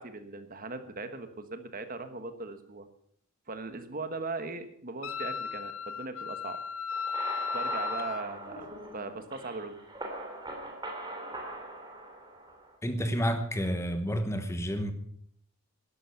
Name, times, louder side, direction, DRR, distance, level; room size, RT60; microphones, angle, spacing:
voice 1, 0.0-2.9 3.5-6.6 7.5-9.7, right 3 dB, 40° right, 1.4 m, -39 dB
Wind instrument woodwind instrument, 5.0-8.3, left 6 dB, 70° left, 0.7 m, -35 dB
sound 1, 6.9-12.7, right 2 dB, 20° right, 2.9 m, -41 dB
voice 2, 12.8-14.9, equal, 10° left, 1.1 m, -30 dB
12.5 x 11.5 x 7.1 m
head